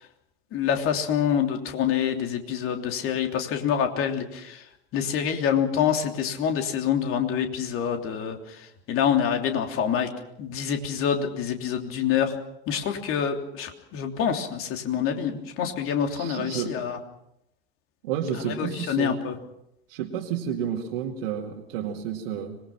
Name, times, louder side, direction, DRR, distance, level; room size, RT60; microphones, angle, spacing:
voice 1, 0.5-4.6 4.9-10.1 10.4-12.3 12.7-17.0 18.6-19.3, left 8 dB, 40° left, 4 dB, 3.2 m, -26 dB
voice 2, 16.1-16.8 18.0-19.2 19.9-22.6, right 8 dB, 60° right, 0 dB, 2.4 m, -31 dB
25.5 x 20.5 x 5.9 m, 0.82 s
figure-of-eight pair, 80°, 32 cm